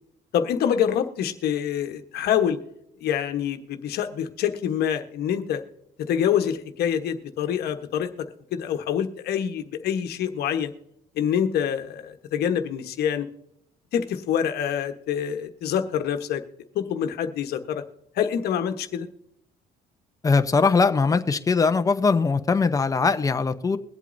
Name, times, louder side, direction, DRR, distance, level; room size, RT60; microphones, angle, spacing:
voice 1, 0.3-2.6 3.0-5.6 6.0-10.7 11.1-13.3 13.9-16.4 16.7-17.8 18.1-19.1, left 9 dB, 70° left, 7 dB, 1.2 m, -26 dB
voice 2, 20.2-23.8, left 4 dB, 20° left, 9 dB, 0.8 m, -21 dB
22.5 x 8.2 x 2.6 m, 0.78 s
cardioid pair, 110°, 17 cm